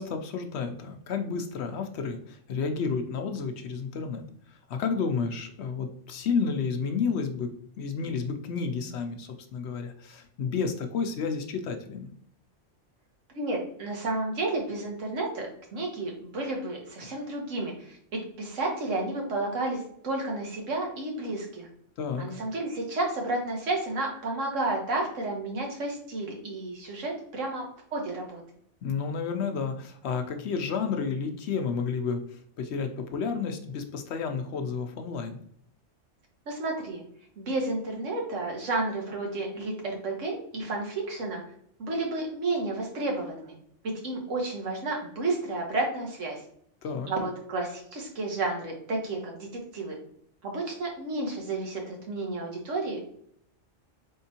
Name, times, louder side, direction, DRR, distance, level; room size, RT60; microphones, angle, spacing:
voice 1, 0.0-4.3 4.7-7.5 7.8-12.1 22.0-22.2 28.8-32.2 32.6-35.4 46.8-47.1, left 5 dB, 65° left, 6 dB, 0.8 m, -31 dB
voice 2, 13.3-21.7 22.2-27.6 27.9-28.4 36.5-37.0 37.4-41.4 41.8-43.5 44.0-46.4 47.1-50.0 50.4-53.0, right 2 dB, 85° right, 0 dB, 1.5 m, -31 dB
4.4 x 3.6 x 2.8 m, 0.66 s
omnidirectional pair, 1.3 m